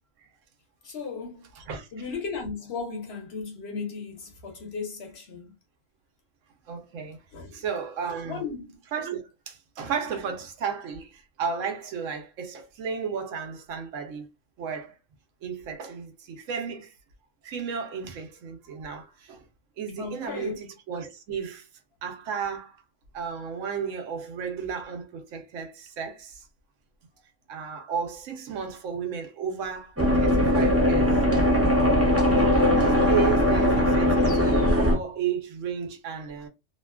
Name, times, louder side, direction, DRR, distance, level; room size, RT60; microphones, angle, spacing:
voice 1, 0.8-1.5 1.9-5.5 7.3-7.6 8.2-8.8 20.0-20.6, left 5 dB, 60° left, 1.0 m, -35 dB
voice 2, 1.6-1.9 6.7-7.2 7.5-8.4 8.9-14.3 14.6-15.0 15.4-16.9 17.4-19.4 19.8-21.7 22.0-22.7 23.1-26.5 27.5-31.1 32.4-36.5, right 6 dB, 90° right, 1.0 m, -33 dB
sound 1, 30.0-35.0, left 1 dB, 15° right, 0.6 m, -20 dB
2.8 x 2.2 x 2.2 m
omnidirectional pair, 1.3 m